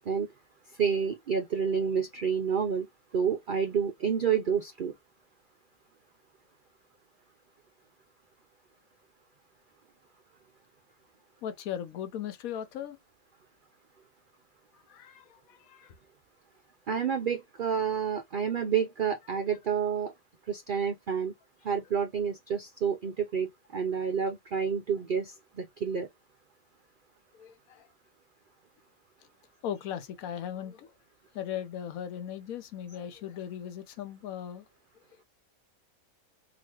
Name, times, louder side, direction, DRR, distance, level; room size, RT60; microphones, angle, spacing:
voice 1, 0.7-2.9 3.1-4.9 16.9-20.1 20.5-21.3 21.6-26.1, right 7 dB, 85° right, 0.4 m, -29 dB
voice 2, 11.4-13.0 14.9-15.9 27.3-27.9 29.6-30.9 31.3-34.6, left 9 dB, 75° left, 1.1 m, -38 dB
3.9 x 2.5 x 2.9 m
omnidirectional pair, 1.6 m